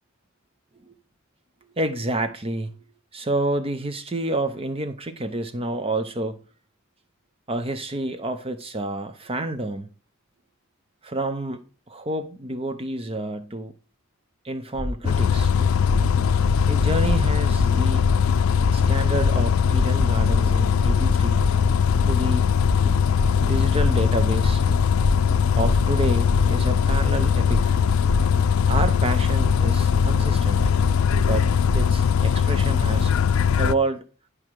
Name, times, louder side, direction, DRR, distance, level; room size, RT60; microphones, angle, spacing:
voice 1, 1.8-2.8 3.1-6.4 7.5-9.9 11.0-13.7 14.4-15.5 16.7-18.0 18.7-21.4 22.1-22.5 23.4-24.6 25.6-27.8 28.7-30.7 31.3-33.1 33.6-34.0, right 2 dB, 30° right, 0.7 m, -29 dB
sound 1, 14.8-18.9 19.1-22.3 22.5-22.9 23.2-23.5 23.8-24.1 24.4-24.7 25.0-25.4 25.6-26.0 26.3-26.6 26.9-27.2 27.5-27.8 28.1-28.4 28.7-29.7 29.9-30.2 30.5-30.8 31.1-31.8, left 1 dB, 10° right, 3.8 m, -28 dB
Bus, 15.1-33.7, left 7 dB, 75° left, 0.4 m, -20 dB
10.5 x 4.9 x 4.7 m
head